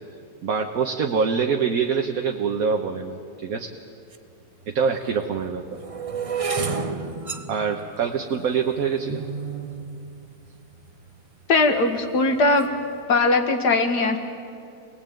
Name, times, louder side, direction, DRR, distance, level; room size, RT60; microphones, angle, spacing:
voice 1, 0.4-3.2 3.4-3.7 4.7-5.6 7.2-9.2, right 6 dB, 60° right, 3 dB, 1.5 m, -25 dB
sound 1, 4.1-4.2 5.0-11.1 11.8-12.2 12.4-12.8, right 5 dB, 30° right, 0.7 m, -32 dB
voice 2, 11.5-12.7 13.1-14.2, left 3 dB, 75° left, 6 dB, 2.3 m, -20 dB
26.0 x 19.0 x 9.1 m, 2.5 s
omnidirectional pair, 1.8 m